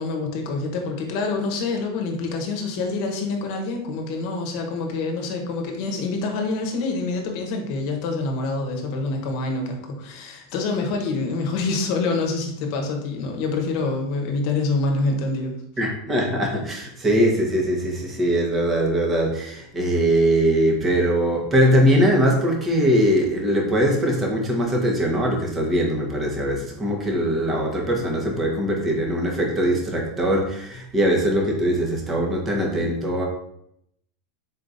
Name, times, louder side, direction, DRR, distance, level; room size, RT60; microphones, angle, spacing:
voice 1, 0.0-15.6, left 3 dB, 55° left, 3 dB, 1.0 m, -26 dB
voice 2, 15.8-33.3, equal, 20° right, 0 dB, 1.2 m, -21 dB
4.2 x 3.7 x 2.6 m, 0.75 s
supercardioid pair, 120°, 0 cm